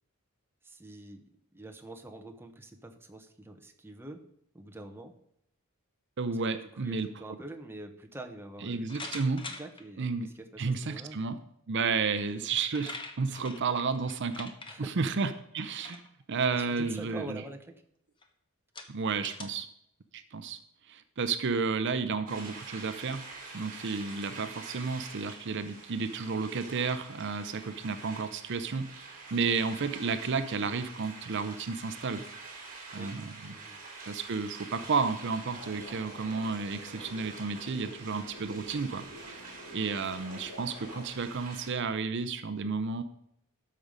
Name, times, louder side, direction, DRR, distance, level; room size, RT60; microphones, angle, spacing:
voice 1, 0.6-1.2 1.5-4.2 4.5-5.1 6.5-8.9 9.5-11.2 13.3-13.4 14.7-15.1 15.8-15.9 16.6-17.8 33.0-33.1 33.5-33.8, right 1 dB, 10° right, 4 dB, 0.9 m, -45 dB
voice 2, 6.2-7.1 8.6-9.4 10.0-10.3 10.6-11.4 11.7-14.5 14.8-16.0 16.3-17.4 18.9-19.7 20.1-20.6 20.9-23.2 23.5-32.2 32.9-33.3 34.0-39.4 39.7-43.0, right 4 dB, 55° right, 11 dB, 0.6 m, -32 dB
sound 1, 8.9-9.8 10.6-10.7 12.2-12.3 12.5-14.8 15.7-16.1 16.5-16.8 17.5-17.6 18.2-18.3 18.7-19.4, left 3 dB, 20° left, 1.0 m, -43 dB
sound 2, 22.3-41.7, right 4 dB, 40° right, 2.9 m, -47 dB
sound 3, 35.5-41.1, left 1 dB, 55° left, 1.9 m, -49 dB
13.0 x 5.4 x 5.2 m, 0.75 s
head